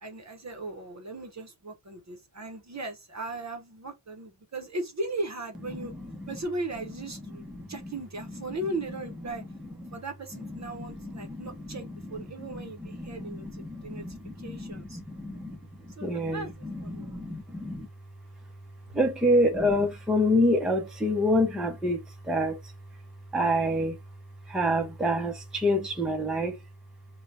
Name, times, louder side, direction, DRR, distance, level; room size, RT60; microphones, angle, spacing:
voice 1, 0.0-5.9 6.3-9.4 9.9-15.0 16.0-17.1, right 2 dB, 35° right, 0.7 m, -37 dB
voice 2, 5.8-6.4 7.3-7.9 9.3-10.0 10.4-17.9 18.9-22.7 23.3-24.0 24.4-26.6, equal, ahead, 0.5 m, -28 dB
3.3 x 2.2 x 3.9 m
wide cardioid pair, 170°, 49 cm